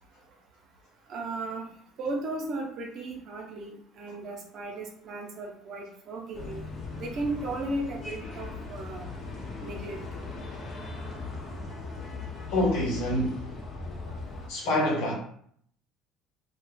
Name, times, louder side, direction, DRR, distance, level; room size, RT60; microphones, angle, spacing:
voice 1, 1.1-1.7 2.0-6.6 7.0-9.2 9.6-10.0, right 2 dB, 55° right, 0.7 m, -35 dB
sound 1, 6.3-14.5, left 3 dB, 45° left, 0.9 m, -38 dB
voice 2, 12.5-13.4 14.5-15.1, left 1 dB, 75° left, 1.1 m, -26 dB
2.3 x 2.2 x 3.3 m
supercardioid pair, 75°, 0 cm